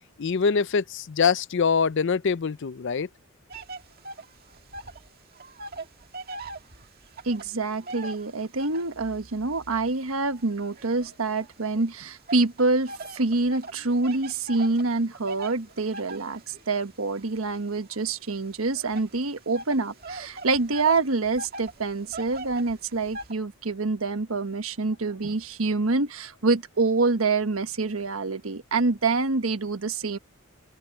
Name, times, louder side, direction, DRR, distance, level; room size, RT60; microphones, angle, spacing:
voice 1, 0.2-3.1, left 5 dB, 60° left, 0.5 m, -24 dB
sound 1, 3.5-5.1 5.3-9.0 9.6-11.7 12.3-23.3, right 2 dB, 45° right, 2.0 m, -41 dB
voice 2, 7.2-30.2, right 3 dB, 85° right, 1.3 m, -26 dB
open air
head